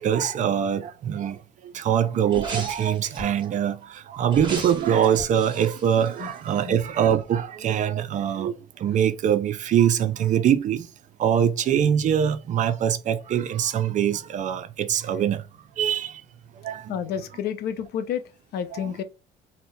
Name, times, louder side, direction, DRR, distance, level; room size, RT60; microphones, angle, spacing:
voice 1, 0.0-10.9 11.2-15.5 15.8-16.2 16.6-17.0 18.8-18.9, right 9 dB, 45° right, 0.4 m, -23 dB
sound 1, 2.3-3.4 4.3-6.8 7.1-7.2, right 2 dB, 25° right, 1.2 m, -37 dB
voice 2, 16.9-18.2 18.5-19.0, left 8 dB, 70° left, 0.5 m, -30 dB
2.7 x 2.1 x 3.9 m
cardioid pair, 110°, 17 cm